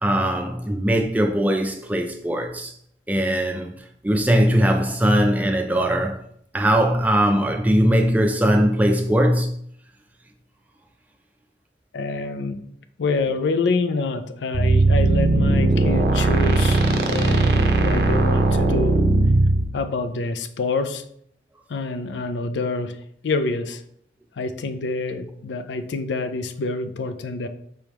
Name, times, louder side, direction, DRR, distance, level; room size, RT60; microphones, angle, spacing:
voice 1, 0.0-2.7 3.1-3.7 4.0-6.2 6.5-9.5, equal, 10° right, 0.4 m, -20 dB
voice 2, 11.9-12.6 13.0-19.0 19.7-21.0 21.7-23.0 23.2-23.8 24.4-27.5, left 3 dB, 85° left, 0.4 m, -26 dB
sound 1, 14.5-19.6, right 2 dB, 65° right, 0.6 m, -18 dB
4.7 x 3.4 x 3.0 m
head